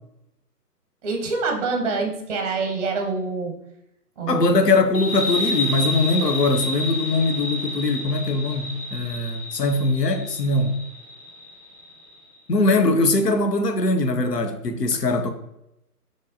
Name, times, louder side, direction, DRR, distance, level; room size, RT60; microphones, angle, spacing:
voice 1, 1.0-3.6 4.2-4.6 14.9-15.0, right 4 dB, 25° right, 0.7 m, -26 dB
voice 2, 4.3-10.8 12.5-15.3, left 2 dB, 90° left, 0.7 m, -21 dB
sound 1, 4.9-12.1, left 1 dB, 25° left, 1.3 m, -30 dB
6.3 x 3.1 x 2.6 m
figure-of-eight pair, 135°, 47 cm